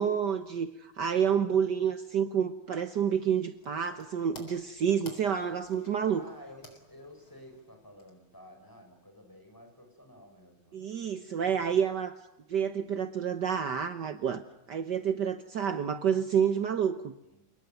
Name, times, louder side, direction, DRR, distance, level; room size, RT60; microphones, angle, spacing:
voice 1, 0.0-6.2 10.7-12.1 12.5-14.4 14.7-17.1, right 8 dB, 60° right, 10 dB, 1.7 m, -29 dB
sound 1, 3.2-8.5, left 2 dB, 85° left, 4.8 m, -55 dB
voice 2, 6.1-10.8 17.3-17.5, left 1 dB, 10° left, 4 dB, 6.5 m, -52 dB
29.5 x 19.0 x 9.2 m, 0.84 s
omnidirectional pair, 2.2 m